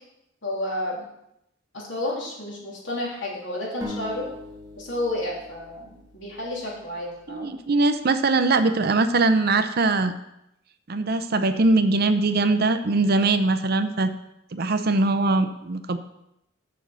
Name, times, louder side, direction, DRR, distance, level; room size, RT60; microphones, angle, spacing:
voice 1, 0.4-1.0 1.7-4.3 4.8-7.5, left 1 dB, 60° left, -4 dB, 3.3 m, -31 dB
sound 1, 3.8-7.4, left 1 dB, 20° right, 1.6 m, -41 dB
voice 2, 7.3-10.1 10.9-14.1 14.5-16.0, right 3 dB, 50° right, 10 dB, 0.6 m, -21 dB
7.0 x 6.2 x 7.4 m, 0.82 s
head